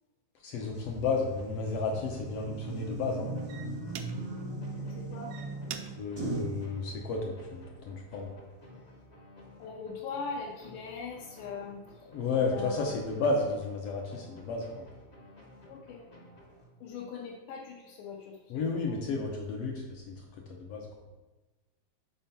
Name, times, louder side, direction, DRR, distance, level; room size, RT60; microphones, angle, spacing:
voice 1, 0.4-3.3 6.0-8.3 12.1-14.9 18.5-20.9, left 3 dB, 75° left, 0 dB, 1.4 m, -32 dB
sound 1, 0.6-17.1, left 1 dB, 50° left, 0.7 m, -54 dB
sound 2, 0.8-6.6, right 2 dB, 30° right, 0.4 m, -38 dB
sound 3, 1.4-1.5 2.1-2.4 3.1-3.2 3.5-4.5 5.1-7.5 8.0-8.4, right 9 dB, 80° right, 1.8 m, -46 dB
voice 2, 4.8-5.3 9.6-11.8 12.3-13.0 15.7-16.0 16.8-18.9, left 5 dB, 90° left, -3 dB, 2.3 m, -41 dB
5.4 x 4.4 x 5.7 m, 1.1 s
omnidirectional pair, 3.6 m